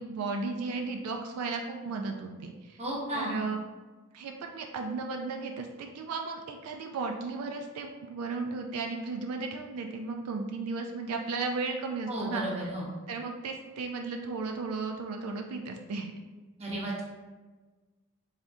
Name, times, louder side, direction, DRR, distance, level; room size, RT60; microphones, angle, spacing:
voice 1, 0.0-2.8 3.1-3.6 4.1-12.4 13.1-16.1, right 4 dB, 85° right, 3 dB, 0.4 m, -35 dB
voice 2, 2.8-3.5 12.1-12.9 16.6-17.0, right 1 dB, 30° right, -4 dB, 0.9 m, -33 dB
3.7 x 3.4 x 2.6 m, 1.3 s
head